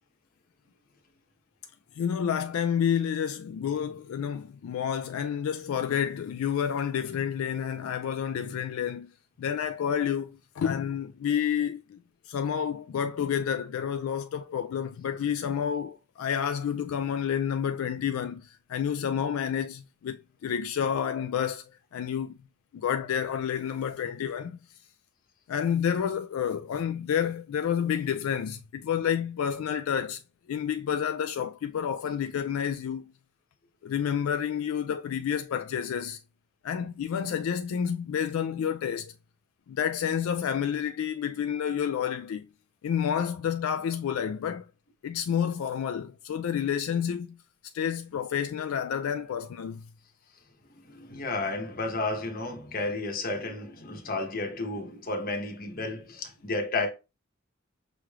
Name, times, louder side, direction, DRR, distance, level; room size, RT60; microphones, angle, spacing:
voice 1, 2.0-9.1 9.4-12.0 12.3-21.6 21.9-22.4 22.7-24.6 25.5-30.2 30.5-33.1 33.8-36.2 36.6-39.1 39.7-42.5 42.8-44.6 45.0-47.4 47.7-49.8, left 8 dB, 85° left, 0.3 m, -29 dB
voice 2, 50.7-56.9, left 2 dB, 45° left, 1.0 m, -32 dB
5.9 x 3.2 x 2.3 m
head